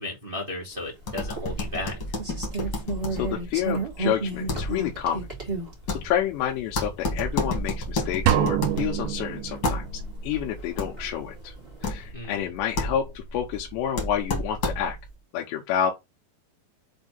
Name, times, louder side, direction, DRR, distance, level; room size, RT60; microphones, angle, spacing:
voice 1, 0.0-2.0 12.1-12.5, left 2 dB, 25° right, 1.0 m, -34 dB
sound 1, 1.0-15.1, left 2 dB, 55° left, 1.3 m, -32 dB
sound 2, 1.4-1.5 2.2-5.7 6.5-6.6 7.3-7.4 8.0-8.1 8.8-8.9 9.5-9.6 10.3-11.1 11.6-11.9, right 3 dB, 55° right, 0.4 m, -32 dB
voice 2, 3.2-5.3 5.9-9.9 10.2-11.5 11.8-15.0 15.3-15.9, left 10 dB, 90° left, 3.1 m, -29 dB
sound 3, 8.3-10.1, right 12 dB, 80° right, 2.3 m, -26 dB
6.7 x 2.7 x 5.4 m
omnidirectional pair, 4.9 m